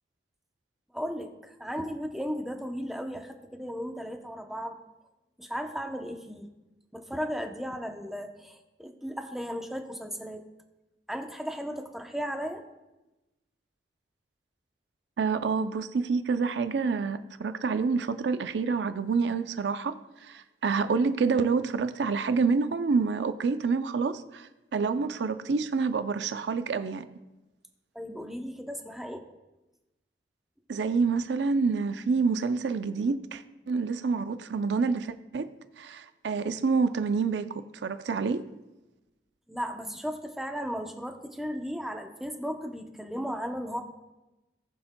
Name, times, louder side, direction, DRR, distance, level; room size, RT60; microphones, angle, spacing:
voice 1, 0.9-4.8 5.4-6.5 6.9-10.4 11.1-12.6 27.9-29.3 39.5-43.8, equal, ahead, 4 dB, 0.7 m, -35 dB
voice 2, 15.2-19.9 20.2-27.1 30.7-35.5 35.8-38.4, right 4 dB, 85° right, 10 dB, 0.5 m, -28 dB
18.5 x 6.9 x 2.2 m, 1.0 s
head